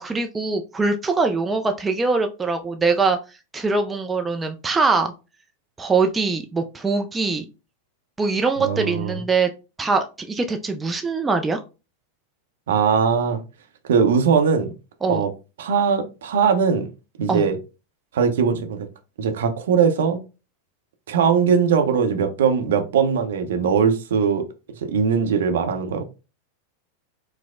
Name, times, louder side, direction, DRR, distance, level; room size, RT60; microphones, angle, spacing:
voice 1, 0.0-5.1 5.8-7.5 8.2-9.5 9.8-11.6 15.0-15.2 17.3-17.5, right 4 dB, 15° right, 0.3 m, -22 dB
voice 2, 8.6-9.2 12.7-13.4 13.9-14.7 15.1-15.3 15.6-16.9 17.2-17.6 18.1-18.9 19.2-20.2 21.1-24.5 24.8-26.0, right 6 dB, 60° right, 0.5 m, -20 dB
4.4 x 2.0 x 2.4 m
figure-of-eight pair, 90°, 0 cm